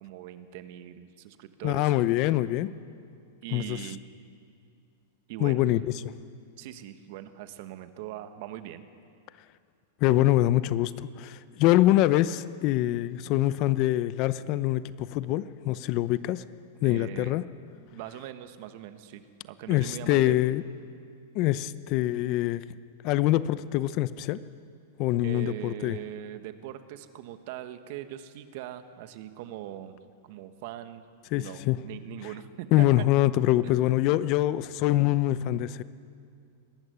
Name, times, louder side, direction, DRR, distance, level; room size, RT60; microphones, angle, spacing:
voice 1, 0.0-1.9 3.4-4.0 5.3-5.6 6.6-8.8 16.8-17.4 17.9-20.4 25.2-30.0 30.2-31.1 31.3-32.9, right 12 dB, 55° right, 10 dB, 1.4 m, -41 dB
voice 2, 1.6-2.7 3.5-3.8 5.4-5.8 10.0-16.4 16.8-17.4 19.7-20.6 21.3-22.6 23.0-24.4 25.0-26.0 31.3-31.8 32.7-35.8, left 15 dB, 45° left, 15 dB, 0.7 m, -24 dB
22.5 x 12.5 x 9.5 m, 2.3 s
hypercardioid pair, 135°, 0 cm